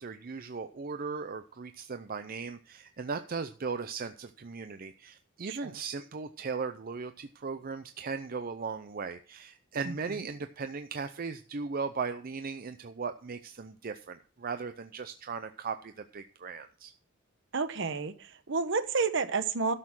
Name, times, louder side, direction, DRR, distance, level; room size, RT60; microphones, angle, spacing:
voice 1, 0.0-16.9, right 5 dB, 45° right, 9 dB, 0.5 m, -37 dB
voice 2, 5.5-5.8 9.9-10.0 17.5-19.7, right 4 dB, 60° right, 11 dB, 1.0 m, -30 dB
12.0 x 6.7 x 6.0 m, 0.40 s
head